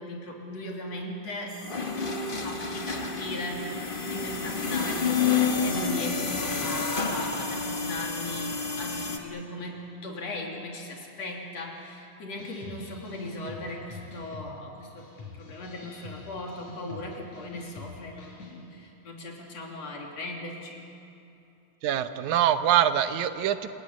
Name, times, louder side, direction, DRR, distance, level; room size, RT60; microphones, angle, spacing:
voice 1, 0.0-1.6 2.4-20.9, left 1 dB, 60° left, 0 dB, 4.1 m, -38 dB
sound 1, 1.5-9.2, left 5 dB, 35° left, 0.8 m, -29 dB
sound 2, 12.4-18.6, left 3 dB, 85° left, 5.4 m, -45 dB
voice 2, 21.8-23.8, right 10 dB, 80° right, 10 dB, 2.3 m, -24 dB
27.5 x 16.5 x 9.5 m, 2.8 s
omnidirectional pair, 3.3 m